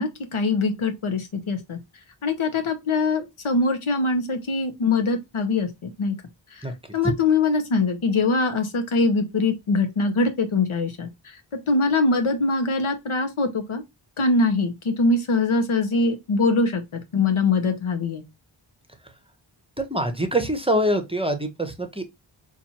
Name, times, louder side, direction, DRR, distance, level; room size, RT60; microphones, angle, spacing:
voice 1, 0.0-1.8 2.2-6.2 6.9-11.1 11.7-13.8 14.2-18.2, left 3 dB, 85° left, 0.8 m, -23 dB
voice 2, 19.9-22.1, equal, 10° right, 0.7 m, -24 dB
4.1 x 2.5 x 2.8 m
wide cardioid pair, 60°, 48 cm